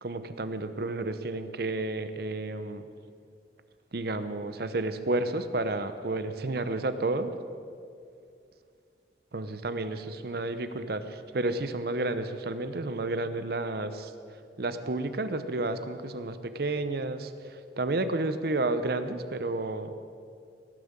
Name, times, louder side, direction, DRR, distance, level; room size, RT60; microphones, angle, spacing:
voice 1, 0.0-2.8 3.9-7.3 9.3-14.1 14.6-17.3 17.8-19.9, right 2 dB, 60° right, 11 dB, 0.8 m, -31 dB
18.0 x 7.5 x 7.4 m, 2.3 s
head